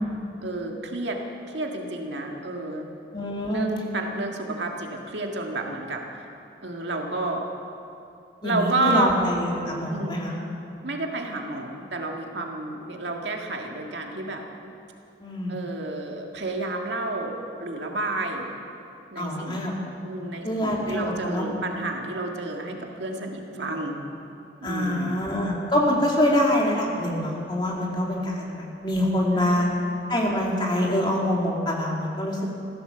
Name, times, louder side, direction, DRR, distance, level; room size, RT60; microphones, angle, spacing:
voice 1, 0.4-1.2 1.5-2.9 3.5-6.3 6.6-7.5 8.4-9.1 9.9-10.2 10.8-14.4 15.5-18.5 19.1-19.7 20.0-24.0 24.6-25.3 29.3-29.6, right 2 dB, 80° right, 1 dB, 1.9 m, -30 dB
voice 2, 3.1-3.7 8.4-10.3 15.2-15.5 19.2-19.8 20.4-21.4 24.6-29.6 30.1-32.5, left 1 dB, 25° left, -2 dB, 2.4 m, -25 dB
15.5 x 13.0 x 7.0 m, 2.8 s
head